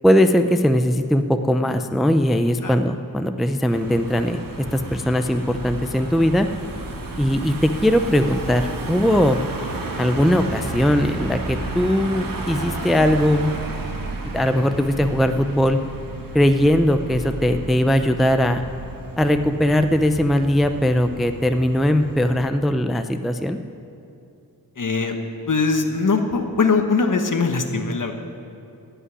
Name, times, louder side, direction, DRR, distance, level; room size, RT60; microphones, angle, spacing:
voice 1, 0.0-6.5 7.2-9.4 10.0-13.5 14.3-15.8 16.3-18.6 19.2-23.6, equal, ahead, 8 dB, 0.4 m, -19 dB
Car passing by / Engine, 3.7-22.4, right 2 dB, 65° right, 1.5 m, -32 dB
voice 2, 24.8-25.2 25.4-28.1, left 4 dB, 55° left, 5 dB, 1.2 m, -21 dB
15.5 x 5.6 x 9.7 m, 2.7 s
wide cardioid pair, 90°, 36 cm